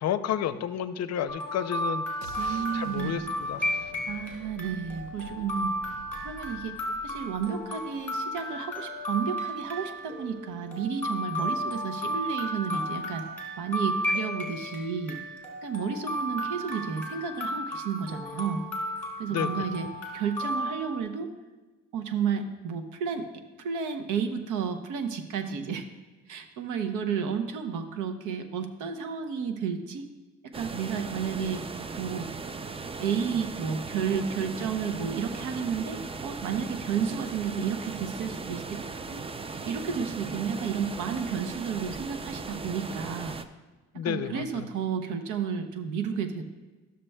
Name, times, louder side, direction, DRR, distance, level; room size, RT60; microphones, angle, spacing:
voice 1, 0.0-2.0 2.4-3.9 19.3-19.6 43.9-44.7, left 9 dB, 60° left, 12 dB, 0.5 m, -31 dB
sound 1, 1.3-21.0, equal, 5° left, 2.2 m, -34 dB
sound 2, 2.2-8.2, right 2 dB, 70° right, 1.0 m, -48 dB
voice 2, 2.4-3.2 4.1-5.7 6.2-6.7 7.0-13.2 13.6-15.2 15.6-18.6 19.2-19.9 20.1-21.3 21.9-23.3 23.6-25.9 26.3-30.1 30.5-31.6 32.0-32.3 33.0-38.8 39.1-39.2 39.6-43.4 44.0-46.4, right 6 dB, 90° right, 7 dB, 0.8 m, -32 dB
sound 3, 30.5-43.4, right 4 dB, 20° right, 0.4 m, -38 dB
13.0 x 6.7 x 2.2 m, 1.2 s
cardioid pair, 90°, 30 cm